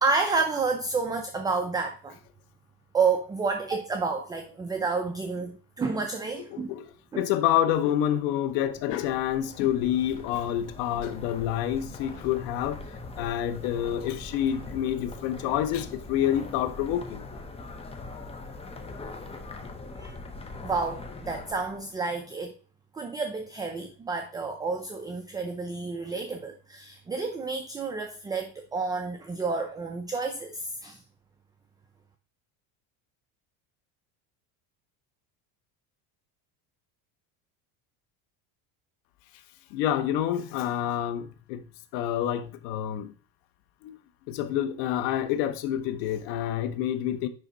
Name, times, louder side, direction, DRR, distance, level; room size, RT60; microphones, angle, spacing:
voice 1, 0.0-2.1 2.9-6.7 7.1-7.2 20.0-20.2 20.6-22.5 22.9-31.0, right 4 dB, 10° right, 0.4 m, -30 dB
voice 2, 6.5-6.9 7.2-12.8 13.2-17.3 39.7-41.6 41.9-43.1 43.8-44.0 44.3-47.3, left 11 dB, 85° left, 1.0 m, -28 dB
sound 1, 8.5-21.9, left 3 dB, 15° left, 0.7 m, -42 dB
9.9 x 3.5 x 4.0 m
cardioid pair, 150°, 45 cm